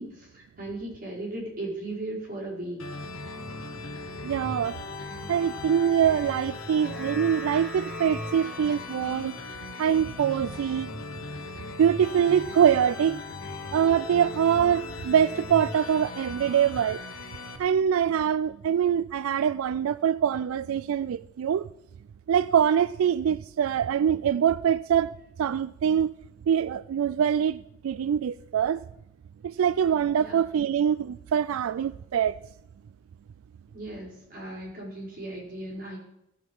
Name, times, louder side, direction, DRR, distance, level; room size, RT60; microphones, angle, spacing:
voice 1, 0.0-2.8 30.2-30.4 33.7-36.0, right 1 dB, 40° right, 4.7 m, -37 dB
sound 1, 2.8-17.6, left 3 dB, 90° left, 1.3 m, -38 dB
voice 2, 4.2-4.8 5.3-9.4 9.8-10.9 11.8-13.2 13.7-17.0 17.6-21.7 22.3-25.1 25.4-26.1 26.5-28.8 29.4-32.4, right 8 dB, 90° right, 0.3 m, -24 dB
sound 2, 6.7-11.2 11.6-11.7, left 1 dB, ahead, 2.2 m, -44 dB
15.5 x 7.4 x 5.4 m
head